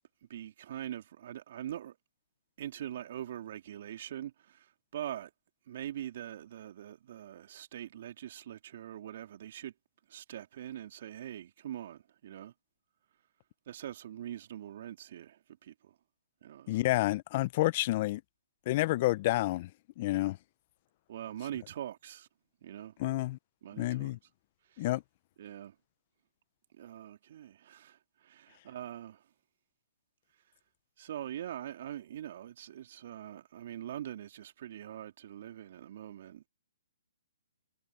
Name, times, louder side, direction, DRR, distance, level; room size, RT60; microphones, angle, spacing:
voice 1, 0.3-2.0 2.6-5.3 5.7-9.7 10.1-12.5 13.7-15.9 16.4-16.8 21.1-22.3 22.6-22.9 23.6-24.1 24.7-24.9 25.4-25.7 26.7-29.2 31.0-36.5, right 11 dB, 50° right, 2.4 m, -43 dB
voice 2, 16.7-18.2 18.7-19.7 20.0-20.4 23.0-23.4 23.8-24.2 24.8-25.0, left 18 dB, 40° left, 0.9 m, -29 dB
hypercardioid pair, 135°, 0 cm